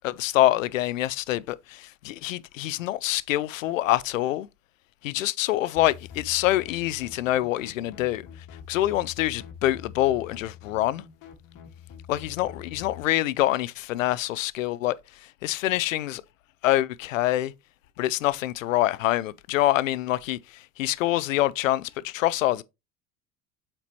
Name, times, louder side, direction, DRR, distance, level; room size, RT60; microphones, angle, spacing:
voice 1, 0.0-4.5 5.0-8.3 8.7-11.0 12.1-16.2 16.6-17.5 18.0-22.6, left 15 dB, 90° left, 0.5 m, -25 dB
sound 1, 5.8-13.1, left 8 dB, 55° left, 2.0 m, -45 dB
8.0 x 4.4 x 3.0 m
hypercardioid pair, 80°, 38 cm